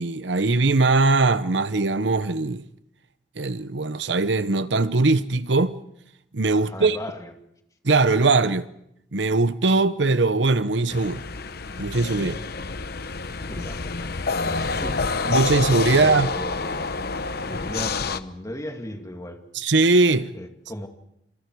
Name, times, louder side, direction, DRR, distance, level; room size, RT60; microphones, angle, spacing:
voice 1, 0.0-2.6 3.4-5.8 6.3-7.0 7.8-8.6 9.1-11.2 11.8-12.4 15.2-16.3 19.5-20.3, right 3 dB, 75° right, 0.9 m, -20 dB
voice 2, 6.6-7.3 13.5-13.9 14.3-15.1 15.9-17.0 17.4-19.4 20.3-20.9, equal, 20° left, 2.4 m, -36 dB
sound 1, 10.9-18.2, left 4 dB, 60° left, 1.0 m, -28 dB
28.5 x 27.0 x 4.8 m
head